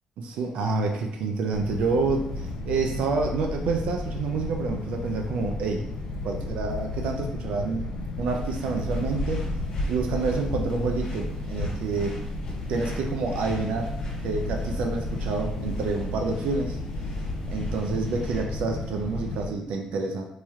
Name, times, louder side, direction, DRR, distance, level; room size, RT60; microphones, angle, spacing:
voice 1, 0.2-5.8 6.2-7.9 8.2-9.5 9.9-12.1 12.7-13.9 14.2-16.8 17.5-20.2, right 4 dB, 85° right, 3 dB, 0.3 m, -28 dB
sound 1, 1.5-19.5, left 2 dB, 70° left, 0.7 m, -34 dB
sound 2, 8.3-18.4, left 1 dB, 45° left, 1.1 m, -35 dB
3.0 x 2.3 x 4.1 m, 0.83 s
cardioid pair, 160°, 2 cm